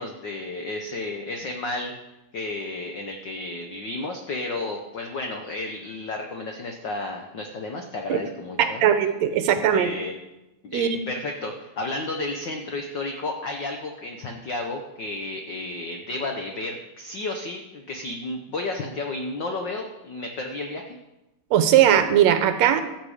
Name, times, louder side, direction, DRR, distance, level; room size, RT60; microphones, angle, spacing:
voice 1, 0.0-1.9 2.3-8.8 9.4-10.1 10.6-21.0, left 2 dB, 80° left, 3 dB, 1.0 m, -32 dB
voice 2, 8.6-9.9 10.7-11.0 21.5-22.8, right 10 dB, 75° right, 9 dB, 1.9 m, -19 dB
15.0 x 6.8 x 4.9 m, 0.98 s
omnidirectional pair, 3.3 m